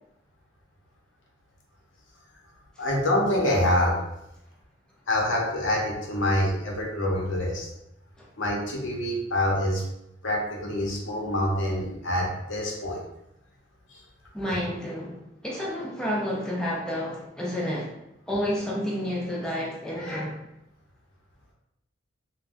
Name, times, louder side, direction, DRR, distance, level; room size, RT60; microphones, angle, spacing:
voice 1, 2.8-4.0 5.1-7.7 8.4-9.8 10.2-13.0, left 1 dB, 70° left, -2 dB, 0.8 m, -26 dB
voice 2, 14.3-17.9 18.3-20.4, equal, 5° left, -5 dB, 0.4 m, -30 dB
3.4 x 2.2 x 2.5 m, 0.85 s
head